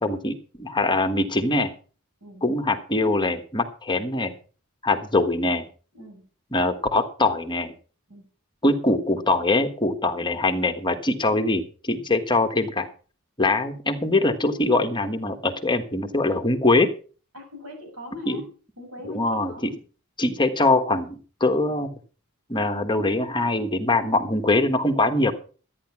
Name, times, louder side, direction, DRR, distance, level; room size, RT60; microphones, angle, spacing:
voice 1, 0.0-1.7 2.4-4.3 4.8-5.6 6.5-7.7 8.6-12.9 13.4-16.9 18.3-18.4 19.1-19.7 20.2-21.9 22.5-25.3, left 2 dB, 20° left, 6 dB, 1.3 m, -23 dB
voice 2, 17.3-18.5 18.8-19.7, left 2 dB, 90° right, 2 dB, 7.4 m, -41 dB
13.0 x 9.7 x 5.9 m, 0.39 s
head